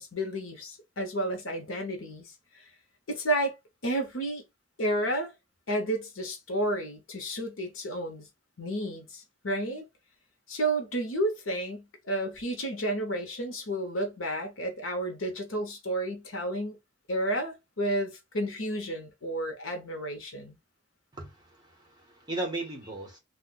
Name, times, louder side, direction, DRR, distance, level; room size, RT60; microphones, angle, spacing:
voice 1, 0.0-2.3 3.1-3.5 3.8-4.4 4.8-5.3 5.7-8.3 8.6-9.8 10.5-16.8 17.1-20.6, right 1 dB, 90° left, 1.0 m, -31 dB
voice 2, 21.1-23.2, right 2 dB, 20° right, 1.1 m, -37 dB
2.5 x 2.4 x 3.9 m
head